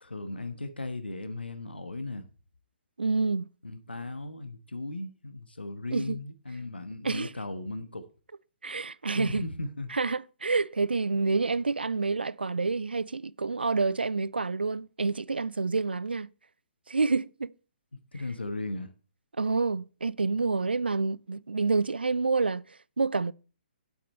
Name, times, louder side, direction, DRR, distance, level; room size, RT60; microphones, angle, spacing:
voice 1, 0.0-2.2 3.6-8.1 9.1-9.9 18.1-18.9, left 2 dB, 75° left, 1.3 m, -36 dB
voice 2, 3.0-3.5 5.9-6.2 7.0-7.3 8.6-9.4 9.9-16.3 16.9-17.5 19.4-22.6 23.0-23.3, right 4 dB, 70° right, 0.4 m, -28 dB
8.4 x 8.0 x 4.4 m
figure-of-eight pair, 130°, 6 cm